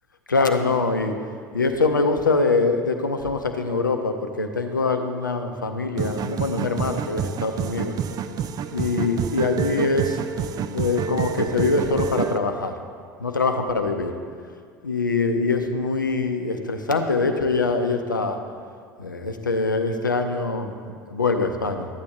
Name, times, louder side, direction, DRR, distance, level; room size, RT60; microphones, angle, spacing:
voice 1, 0.3-1.2 1.5-7.9 8.7-10.2 10.7-12.7 13.2-14.1 14.8-18.4 19.0-21.9, left 3 dB, 90° left, 6 dB, 0.6 m, -23 dB
sound 1, 6.0-12.4, right 7 dB, 40° right, 0.4 m, -28 dB
12.5 x 8.6 x 3.0 m, 2.1 s
figure-of-eight pair, 70°, 10 cm